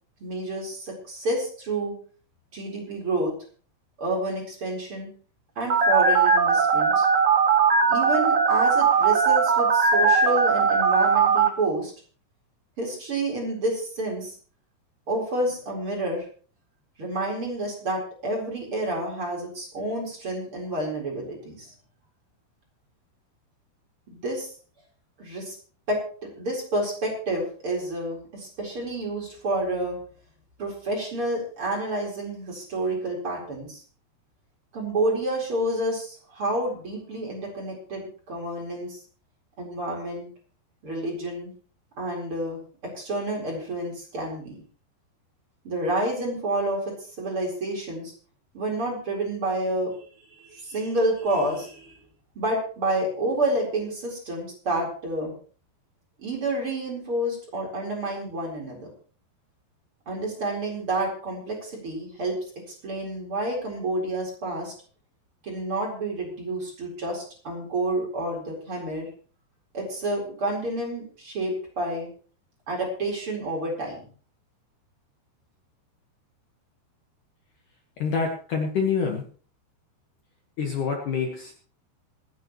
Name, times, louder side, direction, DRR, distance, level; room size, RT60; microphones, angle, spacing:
voice 1, 0.2-1.9 2.5-3.3 4.0-5.1 5.6-7.1 7.9-11.9 12.8-14.3 15.1-16.2 17.0-21.7 24.1-24.5 25.2-25.5 25.9-30.0 30.6-33.8 34.7-39.0 39.6-40.3 40.8-41.5 42.0-42.6 42.9-44.6 45.6-48.1 48.5-51.9 52.3-55.3 56.2-58.9 60.1-62.4 62.8-64.7 65.4-69.1 69.7-72.1 72.7-74.1, right 1 dB, 30° right, -1 dB, 4.7 m, -29 dB
Telephone, 5.7-11.5, right 5 dB, 50° right, 3.1 m, -19 dB
voice 2, 78.0-79.2 80.6-81.5, left 5 dB, 60° left, 2 dB, 2.6 m, -26 dB
26.5 x 9.5 x 3.1 m, 0.42 s
omnidirectional pair, 5.0 m